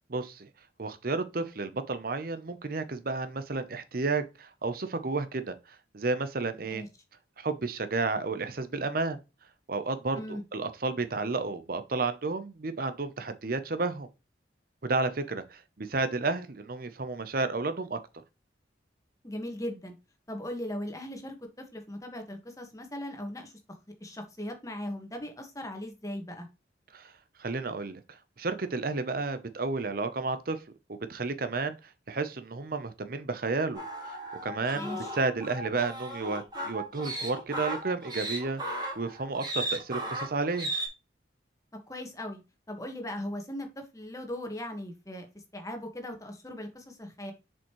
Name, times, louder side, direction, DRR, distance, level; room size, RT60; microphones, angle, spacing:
voice 1, 0.1-0.5 0.8-6.8 7.4-9.2 9.7-14.1 14.8-18.0 26.9-27.1 27.4-30.6 30.9-31.8 32.1-34.2 34.4-40.7, right 3 dB, 50° right, 0.7 m, -32 dB
voice 2, 19.2-19.9 20.3-23.5 24.0-26.5 34.7-35.1 41.9-42.4 42.7-47.3, left 1 dB, 20° left, 1.5 m, -38 dB
sound 1, 33.7-40.9, right 1 dB, 25° right, 3.0 m, -36 dB
7.1 x 5.2 x 3.1 m
head